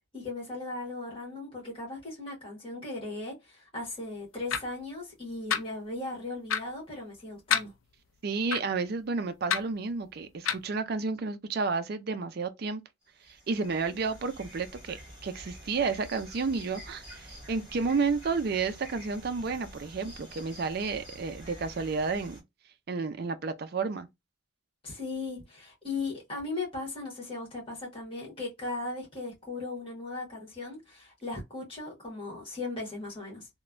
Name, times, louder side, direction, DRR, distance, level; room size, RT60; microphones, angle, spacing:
voice 1, 0.1-7.7 24.8-33.5, left 3 dB, 25° left, 1.3 m, -37 dB
sound 1, 4.5-4.6 5.5-5.6 6.5-6.6 7.5-7.7 8.5-8.6 9.5-9.6 10.5-10.6, left 7 dB, 75° left, 0.4 m, -27 dB
voice 2, 8.2-12.8 13.5-22.4 22.9-24.1, right 4 dB, 50° right, 0.4 m, -31 dB
sound 2, 13.0-22.4, equal, 25° right, 1.4 m, -48 dB
3.0 x 2.1 x 2.4 m
head